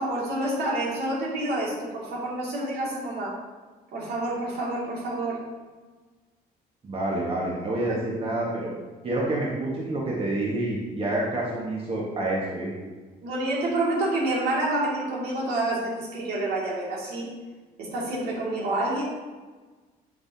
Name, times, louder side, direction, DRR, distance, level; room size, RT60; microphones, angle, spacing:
voice 1, 0.0-3.4 3.9-5.4 7.9-8.0 13.2-17.3 17.8-19.0, right 1 dB, 70° right, -4 dB, 2.5 m, -28 dB
voice 2, 6.8-8.7 9.0-12.7, right 1 dB, 35° right, -4 dB, 1.7 m, -28 dB
11.0 x 5.8 x 2.9 m, 1.4 s
cardioid pair, 110°, 17 cm